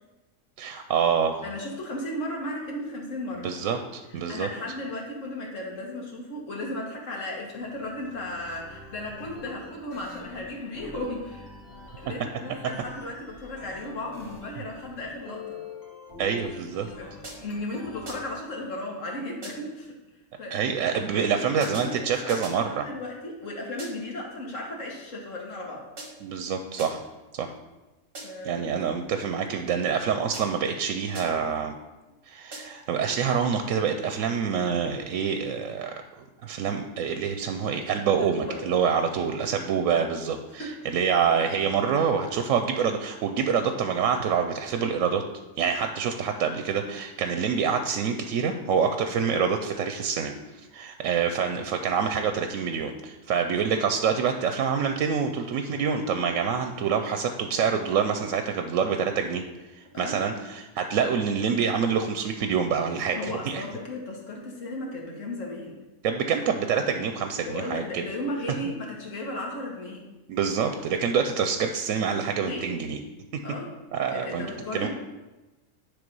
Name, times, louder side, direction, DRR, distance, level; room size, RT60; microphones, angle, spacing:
voice 1, 0.6-1.4 3.4-4.5 16.2-16.9 20.5-22.9 26.2-27.0 27.3-27.5 28.4-31.7 32.3-45.2 45.6-59.4 59.7-63.6 66.0-68.1 70.3-73.0 73.3-73.4 73.9-74.9, right 6 dB, 90° right, 7 dB, 1.0 m, -26 dB
voice 2, 1.4-3.5 4.3-11.4 12.0-15.6 17.0-17.1 17.4-19.9 20.4-25.9 28.2-28.7 38.2-38.6 40.5-40.7 59.9-60.2 63.1-65.7 67.3-70.0 72.3-72.8 73.4-73.7 74.1-74.9, left 1 dB, 75° left, -1 dB, 1.8 m, -35 dB
sound 1, 7.5-18.3, left 3 dB, 45° left, 1.4 m, -46 dB
sound 2, 17.2-17.7 18.1-18.5 19.4-19.8 21.6-22.7 23.8-24.2 26.0-26.4 26.8-27.2 28.1-28.6 30.3-30.8 31.1-31.6 32.5-32.9, right 2 dB, 45° right, 1.9 m, -43 dB
10.0 x 3.5 x 5.3 m, 1.1 s
omnidirectional pair, 1.3 m